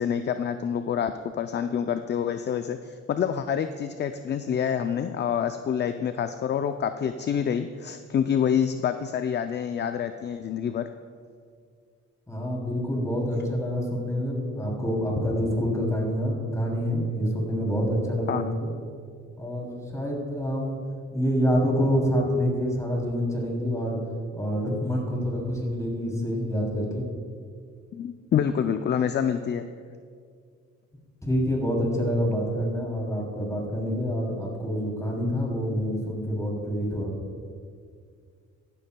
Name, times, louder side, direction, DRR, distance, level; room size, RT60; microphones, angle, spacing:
voice 1, 0.0-10.9 18.3-18.5 27.9-29.7, left 8 dB, 35° left, 9 dB, 0.4 m, -27 dB
voice 2, 12.3-18.7 19.4-20.8 21.1-24.0 24.3-27.0 31.2-37.1, equal, 10° left, -1 dB, 3.0 m, -27 dB
14.5 x 13.0 x 2.2 m, 2.1 s
cardioid pair, 90°, 30 cm